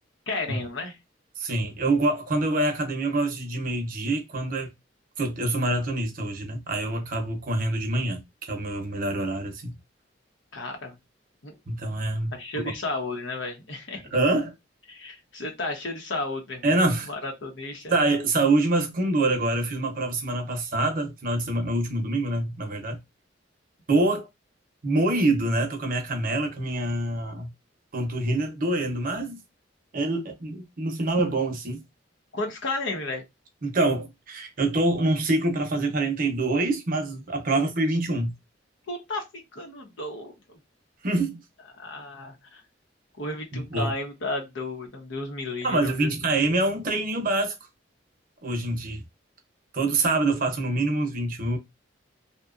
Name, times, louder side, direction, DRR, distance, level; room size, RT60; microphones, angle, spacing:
voice 1, 0.3-1.0 10.5-11.0 11.4-11.5 12.3-14.1 14.9-16.7 17.1-17.9 32.3-33.2 37.5-37.6 38.9-40.6 41.7-42.6 43.2-46.1, left 2 dB, 80° left, 0.8 m, -33 dB
voice 2, 1.4-4.7 5.2-9.8 11.7-12.7 14.1-14.5 16.6-17.1 17.9-23.0 23.9-24.3 24.8-27.5 27.9-29.4 29.9-31.8 33.6-38.3 41.0-41.4 43.5-43.9 45.6-47.6 48.4-49.0 49.7-51.6, right 2 dB, 50° right, 0.7 m, -25 dB
2.7 x 2.2 x 2.4 m
head